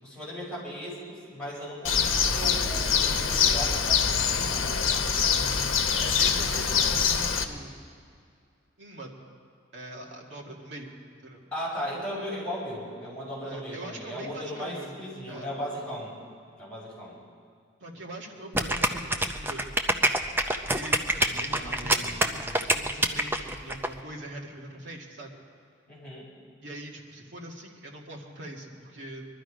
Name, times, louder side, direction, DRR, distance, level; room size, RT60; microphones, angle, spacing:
voice 1, 0.0-4.8 11.5-16.1 16.6-17.2 18.3-18.4 21.2-22.7 25.9-26.3, equal, 5° left, -8 dB, 5.4 m, -37 dB
Bird, 1.8-7.4, left 6 dB, 75° left, 1.0 m, -24 dB
voice 2, 5.1-7.8 8.8-9.1 9.7-11.0 11.2-11.4 13.4-14.9 15.3-15.5 17.8-20.1 20.7-25.4 26.6-29.3, right 1 dB, 60° right, -1 dB, 1.9 m, -42 dB
sound 1, 18.5-23.9, right 1 dB, 10° right, 0.5 m, -25 dB
22.5 x 12.5 x 5.1 m, 2.3 s
head